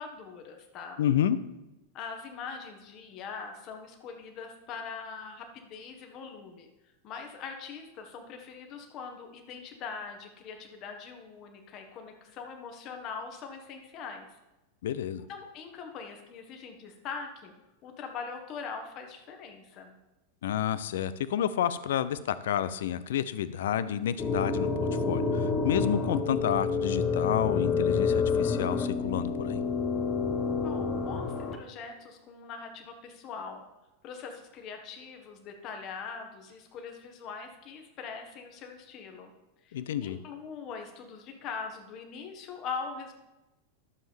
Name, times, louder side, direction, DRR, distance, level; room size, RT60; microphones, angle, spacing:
voice 1, 0.0-1.0 1.9-6.7 7.0-14.3 15.3-17.5 17.8-19.9 30.6-33.6 34.0-39.3 39.6-43.1, left 5 dB, 35° left, 4 dB, 1.3 m, -42 dB
voice 2, 1.0-1.4 14.8-15.2 20.4-24.7 25.1-29.6 39.7-40.2, left 10 dB, 60° left, 15 dB, 0.5 m, -30 dB
sound 1, 24.2-31.6, left 4 dB, 20° left, 1.0 m, -28 dB
12.0 x 7.2 x 3.6 m, 1.0 s
figure-of-eight pair, 90°, 0 cm